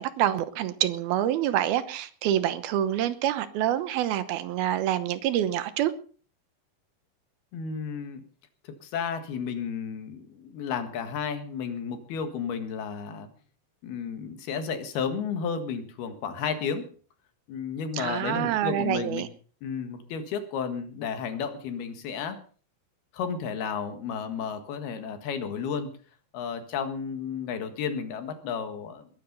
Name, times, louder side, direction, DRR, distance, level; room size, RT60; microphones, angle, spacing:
voice 1, 0.0-5.9 17.9-19.3, right 12 dB, 80° right, 2.9 m, -27 dB
voice 2, 7.5-8.2 8.8-13.3 13.8-16.9 17.5-19.3 19.6-22.4 23.1-25.9 26.3-29.1, left 6 dB, 85° left, 3.7 m, -32 dB
21.0 x 10.0 x 5.4 m
omnidirectional pair, 4.4 m